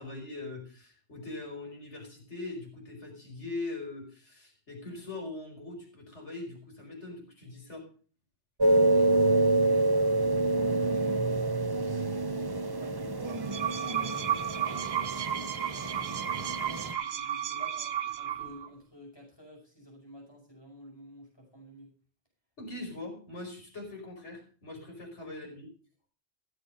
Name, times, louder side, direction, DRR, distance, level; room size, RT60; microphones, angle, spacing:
voice 1, 0.0-7.9 22.6-25.7, left 2 dB, 85° left, 2 dB, 5.2 m, -41 dB
sound 1, 8.6-16.9, right 2 dB, 25° right, 0.7 m, -27 dB
voice 2, 8.7-11.4 11.9-21.9, left 1 dB, 20° left, -1 dB, 5.7 m, -51 dB
sound 2, 13.3-18.7, right 9 dB, 65° right, 1.1 m, -33 dB
16.0 x 7.7 x 6.5 m, 0.41 s
omnidirectional pair, 1.2 m